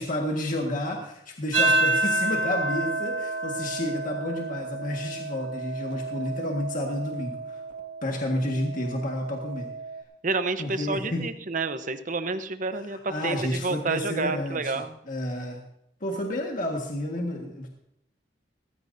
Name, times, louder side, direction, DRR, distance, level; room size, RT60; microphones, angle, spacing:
voice 1, 0.0-7.6 8.0-9.7 10.6-11.3 12.7-15.6 16.0-17.7, left 1 dB, 50° left, 0 dB, 1.7 m, -30 dB
sound 1, 1.5-10.0, right 2 dB, 85° right, 2.4 m, -29 dB
voice 2, 10.2-15.0, right 3 dB, 45° right, 10 dB, 0.9 m, -29 dB
18.5 x 15.5 x 2.7 m, 0.79 s
head